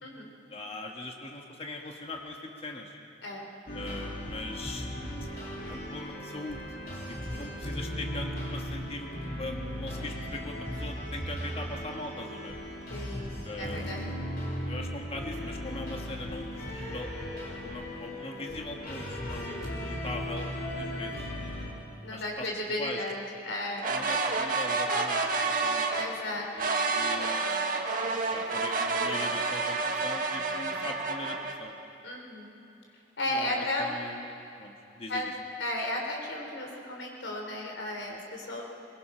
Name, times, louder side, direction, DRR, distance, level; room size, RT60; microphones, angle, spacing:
voice 1, 0.5-3.0 3.7-4.9 5.6-6.6 7.1-9.1 9.4-12.5 13.4-13.9 14.7-17.1 17.6-21.3 22.1-22.5 22.8-23.0 23.9-25.9 26.5-27.4 28.3-31.7 33.3-34.3 34.6-35.3, left 2 dB, 30° left, 2 dB, 1.5 m, -41 dB
sound 1, 3.7-21.7, equal, 50° left, 3.5 m, -37 dB
voice 2, 7.3-7.8 12.9-14.1 20.7-21.1 22.0-24.0 25.9-26.5 32.0-32.5 33.2-34.1 35.1-35.3 35.6-38.6, left 1 dB, 90° left, 0 dB, 3.9 m, -34 dB
sound 2, 23.8-26.1 26.6-31.5, right 3 dB, 45° right, 1.6 m, -29 dB
22.0 x 22.0 x 5.7 m, 2.7 s
head